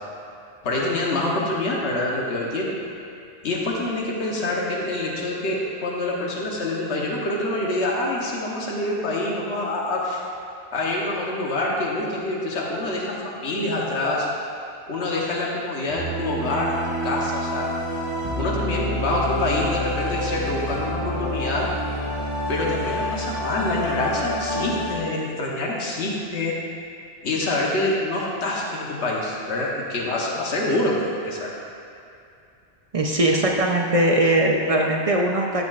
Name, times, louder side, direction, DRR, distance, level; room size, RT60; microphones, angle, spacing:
voice 1, 0.6-2.7 3.4-10.2 10.7-14.3 14.9-17.7 18.4-21.7 22.5-26.6 27.2-31.0 31.2-31.5, left 2 dB, 80° left, -3 dB, 1.4 m, -26 dB
sound 1, 15.9-25.0, equal, 25° right, 1.6 m, -28 dB
voice 2, 32.9-35.7, right 1 dB, 40° right, 0 dB, 0.6 m, -20 dB
13.5 x 6.8 x 2.4 m, 2.5 s
omnidirectional pair, 1.1 m